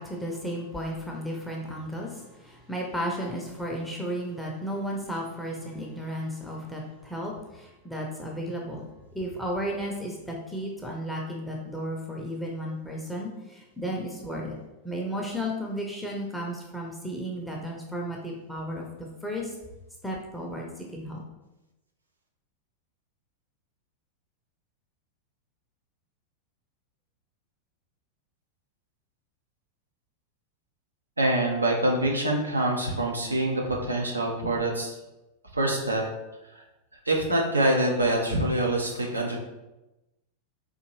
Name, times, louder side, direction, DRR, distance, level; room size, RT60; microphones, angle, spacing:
voice 1, 0.0-14.6 14.8-18.9 19.2-19.5 20.0-21.2, equal, ahead, -2 dB, 0.6 m, -34 dB
voice 2, 31.2-34.9 35.5-36.0 36.5-36.6 37.1-39.4, right 1 dB, 80° right, 0 dB, 0.6 m, -25 dB
3.7 x 2.5 x 3.0 m, 1.0 s
figure-of-eight pair, 90°, 0 cm